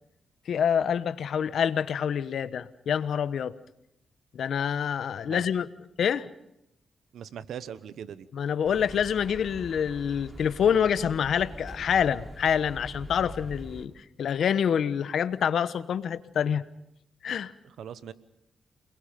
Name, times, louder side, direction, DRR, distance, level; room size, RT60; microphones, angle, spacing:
voice 1, 0.5-3.5 4.3-5.7 6.0-6.3 8.3-16.6 17.2-17.5, left 8 dB, 75° left, 14 dB, 1.0 m, -26 dB
voice 2, 5.2-5.5 7.1-8.3 17.8-18.1, right 8 dB, 85° right, 14 dB, 1.1 m, -40 dB
sound 1, 8.6-13.9, equal, 15° right, 3.6 m, -43 dB
29.0 x 21.5 x 5.2 m, 0.80 s
cardioid pair, 65°, 0 cm